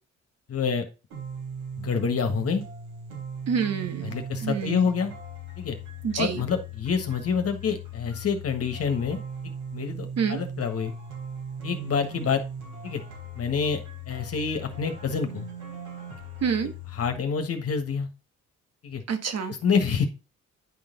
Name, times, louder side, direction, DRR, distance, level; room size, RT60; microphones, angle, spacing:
voice 1, 0.5-0.8 1.8-2.6 4.0-5.1 5.6-5.8 6.2-9.2 9.7-10.9 11.6-12.4 12.8-13.0 13.4-15.5 17.0-18.1 18.8-19.0 19.6-20.1, left 6 dB, 50° left, 6 dB, 1.6 m, -27 dB
sound 1, 1.1-17.1, right 2 dB, 85° right, 3.8 m, -38 dB
voice 2, 3.5-4.1 4.4-4.9 6.0-6.4 10.2-10.4 16.4-16.7 19.1-19.5, right 6 dB, 55° right, 7 dB, 1.4 m, -27 dB
10.0 x 4.0 x 3.9 m, 0.30 s
cardioid pair, 90°, 30 cm